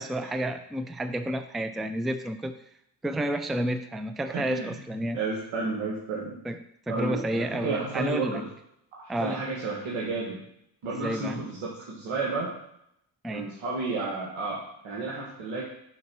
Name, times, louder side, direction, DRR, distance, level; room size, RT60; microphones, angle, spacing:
voice 1, 0.0-2.6 3.0-5.2 6.4-6.6 6.9-8.4 9.1-9.4 10.8-11.4 13.2-13.5, right 1 dB, ahead, 9 dB, 0.4 m, -30 dB
voice 2, 4.3-4.7 5.1-6.4 6.9-8.5 8.9-10.4 10.8-12.5 13.3-15.6, right 3 dB, 70° right, -4 dB, 1.8 m, -32 dB
5.7 x 3.9 x 6.1 m, 0.75 s
supercardioid pair, 60°, 49 cm